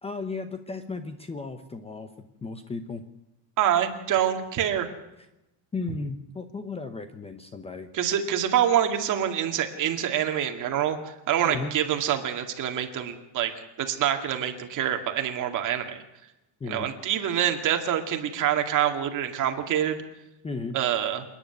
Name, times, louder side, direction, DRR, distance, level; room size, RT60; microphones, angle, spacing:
voice 1, 0.0-2.1 2.4-3.0 5.7-7.9 11.4-11.7 16.6-16.9 20.4-20.8, left 4 dB, 15° left, 9 dB, 0.8 m, -35 dB
voice 2, 3.6-4.9 7.9-13.5 13.8-16.0 16.7-20.0 20.7-21.2, right 10 dB, 45° right, 5 dB, 2.3 m, -26 dB
27.5 x 10.0 x 9.4 m, 0.93 s
cardioid pair, 170°, 44 cm